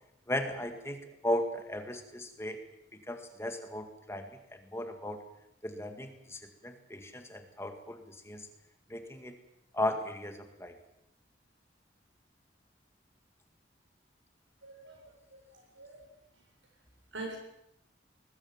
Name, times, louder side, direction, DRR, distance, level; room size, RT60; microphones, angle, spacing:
voice 1, 0.3-2.6 3.1-5.2 5.6-8.5 8.9-9.4 9.7-10.7, left 1 dB, 15° left, 6 dB, 2.0 m, -36 dB
voice 2, 14.6-16.0 17.1-17.4, right 2 dB, 90° right, 2 dB, 7.7 m, -45 dB
21.5 x 20.5 x 7.4 m, 0.82 s
head